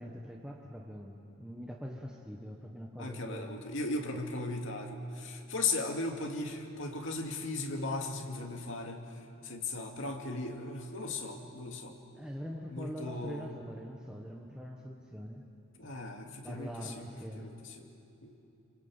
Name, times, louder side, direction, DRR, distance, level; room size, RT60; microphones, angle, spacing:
voice 1, 0.0-3.6 4.1-4.2 12.2-15.5 16.4-17.6, equal, 5° right, 0 dB, 1.4 m, -43 dB
voice 2, 3.0-9.0 9.4-11.9 12.7-13.5 15.8-17.0 17.3-17.9 18.2-18.3, left 3 dB, 70° left, 2 dB, 2.6 m, -37 dB
26.5 x 24.5 x 9.0 m, 2.7 s
head